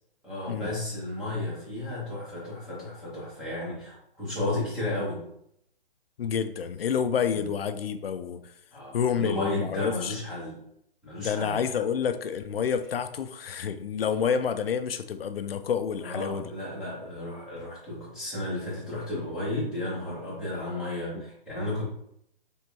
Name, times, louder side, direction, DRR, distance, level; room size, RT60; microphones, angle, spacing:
voice 1, 0.2-5.2 7.3-7.4 8.7-10.6 11.0-11.6 16.0-21.8, left 1 dB, ahead, -10 dB, 1.6 m, -33 dB
voice 2, 6.2-8.5 8.9-10.1 11.2-16.5 21.1-21.2, left 7 dB, 90° left, 10 dB, 0.5 m, -29 dB
4.4 x 3.6 x 2.8 m, 0.73 s
hypercardioid pair, 155°, 29 cm